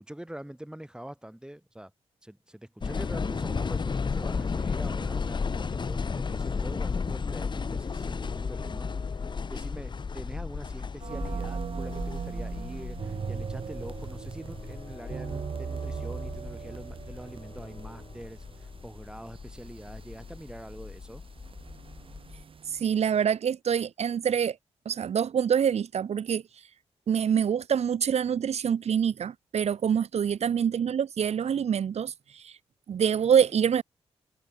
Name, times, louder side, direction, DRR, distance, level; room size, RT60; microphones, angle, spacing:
voice 1, 0.0-1.9 2.2-8.9 9.5-21.2 30.4-30.6, right 1 dB, 5° right, 7.6 m, -44 dB
sound 1, 2.8-22.4, left 5 dB, 40° left, 1.0 m, -34 dB
sound 2, 11.0-23.2, right 6 dB, 50° right, 1.2 m, -39 dB
voice 2, 22.7-24.6 24.9-26.4 27.1-32.6 32.9-33.8, right 8 dB, 70° right, 1.6 m, -26 dB
cardioid pair, 55°, 11 cm